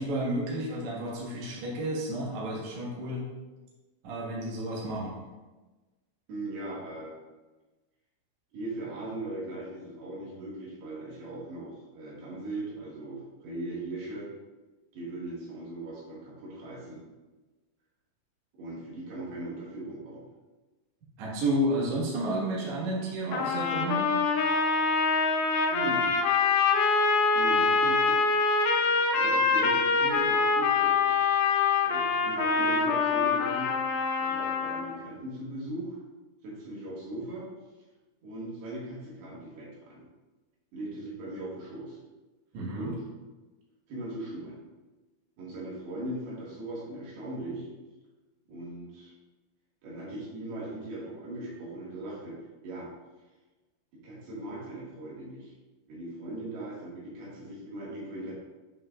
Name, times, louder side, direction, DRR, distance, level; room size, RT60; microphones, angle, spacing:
voice 1, 0.0-3.2 4.0-5.2 21.2-24.1 42.5-42.9, right 1 dB, 80° right, -6 dB, 1.6 m, -31 dB
voice 2, 6.3-7.1 8.5-14.3 14.9-17.0 18.6-20.2 25.7-26.1 27.3-28.3 29.1-31.2 31.8-33.8 34.2-36.0 36.4-37.5 38.2-40.0 40.7-42.0 42.7-43.0 43.9-44.6 45.4-47.7 48.5-49.1 49.8-52.9 53.9-55.5 55.9-58.4, right 1 dB, 60° right, -6 dB, 3.3 m, -39 dB
sound 1, 23.3-35.0, left 4 dB, 85° left, 3.1 m, -25 dB
9.0 x 5.6 x 2.4 m, 1.2 s
omnidirectional pair, 5.9 m